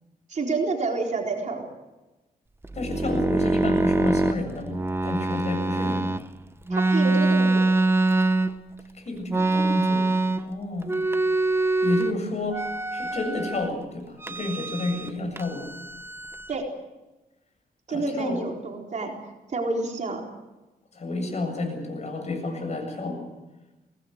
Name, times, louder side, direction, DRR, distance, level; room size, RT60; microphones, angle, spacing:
voice 1, 0.3-1.7 6.7-7.7 16.5-16.6 17.9-19.1 19.5-20.2, right 3 dB, 50° right, 1 dB, 4.1 m, -28 dB
sound 1, 2.6-6.2 6.7-8.8 9.3-10.6 10.8-12.1 12.5-13.7 14.2-15.1 15.4-16.6, right 2 dB, 15° right, 1.0 m, -24 dB
voice 2, 2.7-6.1 8.9-10.1 10.4-11.0 11.8-12.7 12.9-15.7 17.9-18.4 20.9-23.2, left 2 dB, 45° left, 5 dB, 7.7 m, -30 dB
24.0 x 19.0 x 8.1 m, 1.1 s
cardioid pair, 110°, 16 cm